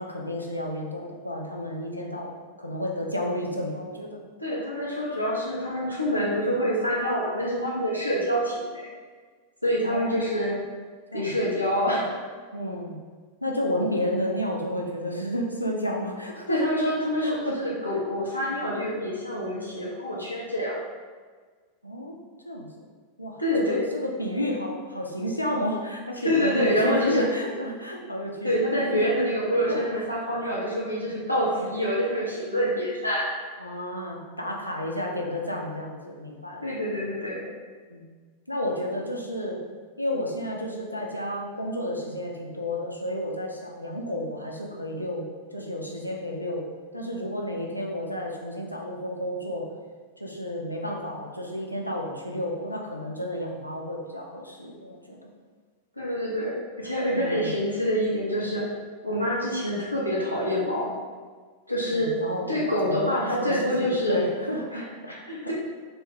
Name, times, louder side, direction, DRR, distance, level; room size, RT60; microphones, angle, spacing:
voice 1, 0.0-4.2 9.8-10.5 11.1-11.3 12.5-12.9 13.4-16.6 17.2-17.6 21.8-22.2 22.4-22.8 23.2-29.0 29.7-30.0 31.3-31.8 33.6-37.1 37.9-38.1 38.5-39.6 40.0-45.3 45.5-49.7 50.2-55.3 57.1-57.5 61.9-62.6 62.8-65.1, left 1 dB, 85° left, -1 dB, 0.4 m, -31 dB
voice 2, 4.4-8.9 9.6-10.6 11.1-12.2 16.5-20.7 23.4-23.8 26.2-27.3 28.4-33.3 36.6-37.5 56.0-58.7 59.0-60.9 61.7-62.2 62.5-64.2 64.7-65.5, equal, 90° right, -6 dB, 0.6 m, -26 dB
2.4 x 2.2 x 3.4 m, 1.5 s
figure-of-eight pair, 90°, 0 cm